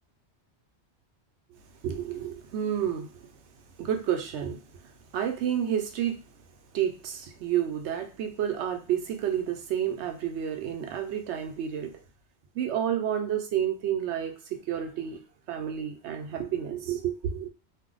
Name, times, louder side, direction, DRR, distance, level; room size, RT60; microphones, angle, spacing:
voice 1, 1.8-3.3 3.8-6.2 6.7-12.0 12.5-15.2 15.5-17.5, right 9 dB, 85° right, 0.9 m, -30 dB
2.6 x 2.0 x 3.7 m
omnidirectional pair, 1.1 m